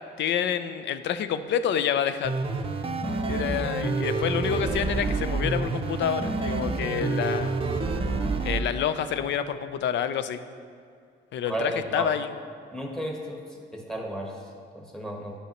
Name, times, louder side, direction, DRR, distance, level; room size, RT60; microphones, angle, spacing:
voice 1, 0.2-2.3 3.3-7.5 8.4-10.4 11.3-12.3, left 9 dB, 65° left, 12 dB, 0.4 m, -28 dB
sound 1, 2.2-8.6, right 3 dB, 30° right, 0.6 m, -28 dB
voice 2, 11.5-12.1 12.7-14.3 14.7-15.3, right 1 dB, 5° left, 0 dB, 1.2 m, -33 dB
9.7 x 5.5 x 3.0 m, 2.3 s
cardioid pair, 90°, 20 cm